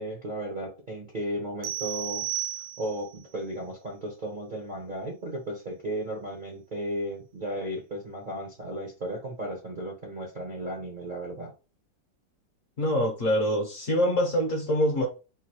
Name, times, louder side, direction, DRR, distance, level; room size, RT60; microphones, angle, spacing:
voice 1, 0.0-2.3 2.8-11.5, right 1 dB, 45° right, 0.6 m, -35 dB
sound 1, 1.6-3.2, right 13 dB, 75° right, 0.9 m, -33 dB
voice 2, 12.8-15.1, equal, 50° left, 1.1 m, -25 dB
3.8 x 2.6 x 3.0 m
omnidirectional pair, 2.1 m